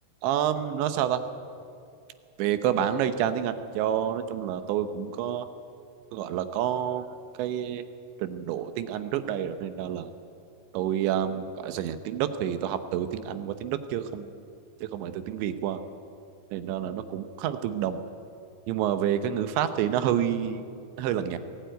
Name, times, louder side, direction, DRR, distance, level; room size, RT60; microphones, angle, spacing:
voice 1, 0.2-1.2 2.4-5.5 6.1-7.1 7.4-7.8 8.2-10.1 10.7-14.3 14.8-15.8 16.5-18.0 18.7-20.6 21.0-21.4, right 10 dB, 80° right, 10 dB, 3.2 m, -28 dB
22.0 x 16.5 x 9.2 m, 2.4 s
omnidirectional pair, 5.2 m